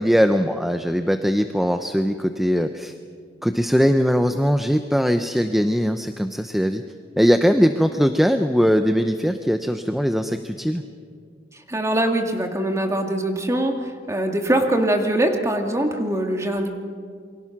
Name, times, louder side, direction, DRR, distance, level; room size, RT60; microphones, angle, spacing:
voice 1, 0.0-2.9 3.4-6.8 7.2-10.8, equal, ahead, 7 dB, 0.7 m, -20 dB
voice 2, 11.7-13.8 14.1-16.7, right 1 dB, 15° right, 3 dB, 2.1 m, -22 dB
28.5 x 23.0 x 6.0 m, 2.1 s
head